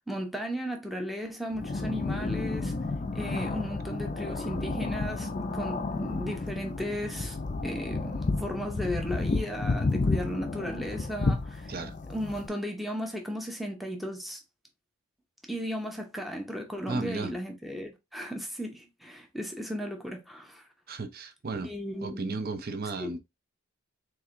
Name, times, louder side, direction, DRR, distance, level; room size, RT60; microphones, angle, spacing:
voice 1, 0.1-2.7 3.1-7.4 7.6-11.7 12.1-14.4 15.5-20.7 21.6-22.4 23.0-23.1, equal, ahead, 0.7 m, -35 dB
sound 1, 1.5-12.5, left 3 dB, 35° left, 0.5 m, -31 dB
voice 2, 16.9-17.3 20.9-21.7 22.0-23.2, right 3 dB, 45° right, 0.7 m, -34 dB
4.7 x 3.4 x 2.5 m
head